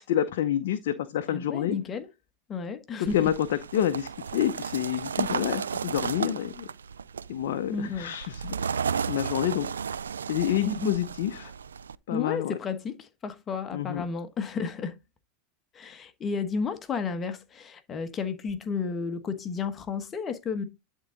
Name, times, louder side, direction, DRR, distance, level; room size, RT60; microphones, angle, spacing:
voice 1, 0.0-1.8 3.1-6.7 7.3-8.5 9.1-9.7 10.3-11.5 12.1-12.6 13.7-14.0, left 11 dB, 70° left, 0.7 m, -28 dB
voice 2, 1.3-2.1 2.5-3.3 7.7-8.1 10.6-10.9 12.1-15.0 15.7-20.6, left 5 dB, 30° left, 1.2 m, -32 dB
sound 1, 3.0-11.9, right 6 dB, 85° right, 0.3 m, -34 dB
10.5 x 3.8 x 3.8 m
hypercardioid pair, 95°, 0 cm